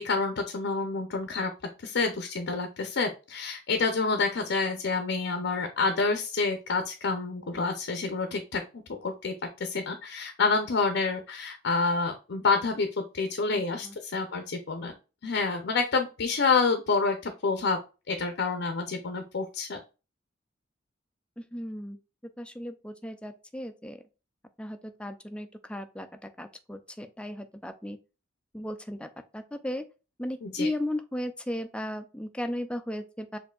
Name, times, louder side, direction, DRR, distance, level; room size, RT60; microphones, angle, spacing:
voice 1, 0.0-1.5 1.8-8.6 9.0-9.3 9.6-14.9 15.2-17.8 18.1-19.8 30.4-30.7, left 4 dB, 65° left, 0.6 m, -28 dB
voice 2, 13.5-13.9 21.4-22.0 22.4-24.0 24.6-28.0 28.5-29.8 30.2-33.4, left 1 dB, 5° left, 0.4 m, -36 dB
6.6 x 2.6 x 2.3 m
head